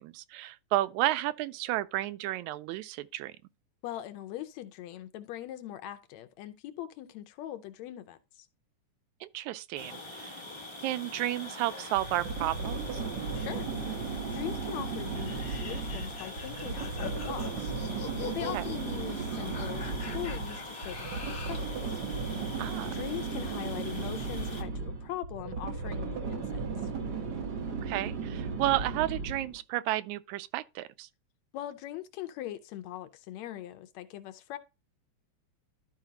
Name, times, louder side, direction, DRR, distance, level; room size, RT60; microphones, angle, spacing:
voice 1, 0.0-3.3 9.2-10.4 10.8-13.0 18.5-18.7 22.6-22.9 27.8-31.1, right 15 dB, 85° right, 1.9 m, -32 dB
voice 2, 3.8-8.5 13.3-13.7 14.3-17.8 18.0-22.0 22.3-26.9 31.5-34.6, left 12 dB, 75° left, 1.8 m, -41 dB
sound 1, 9.7-24.6, left 2 dB, 25° left, 0.5 m, -44 dB
sound 2, 12.0-29.6, right 4 dB, 55° right, 1.1 m, -35 dB
sound 3, 15.1-21.7, left 5 dB, 45° left, 1.2 m, -44 dB
12.0 x 4.9 x 2.8 m
omnidirectional pair, 3.3 m